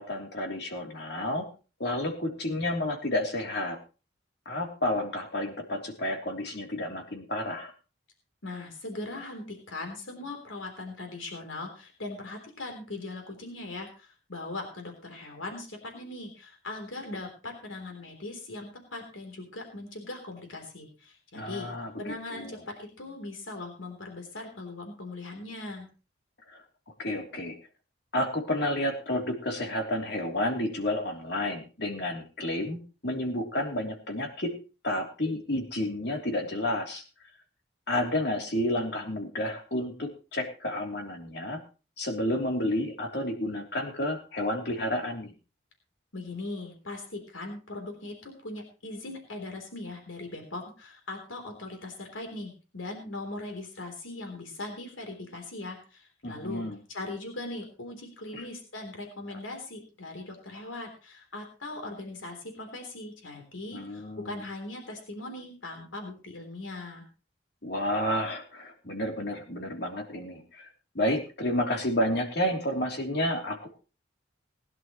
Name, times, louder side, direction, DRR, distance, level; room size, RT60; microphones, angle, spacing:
voice 1, 0.0-1.5 1.8-3.8 4.4-7.7 21.3-21.9 22.3-22.6 26.5-26.6 27.0-27.5 28.1-32.8 33.0-34.5 34.8-37.0 37.9-41.6 42.0-45.3 56.2-56.8 58.3-58.4 63.7-64.4 67.6-70.7 70.9-73.7, left 1 dB, 55° left, 2 dB, 3.2 m, -30 dB
voice 2, 8.4-21.7 22.0-25.9 46.1-67.0, left 2 dB, 85° left, 3 dB, 3.6 m, -40 dB
20.5 x 11.0 x 3.1 m, 0.34 s
head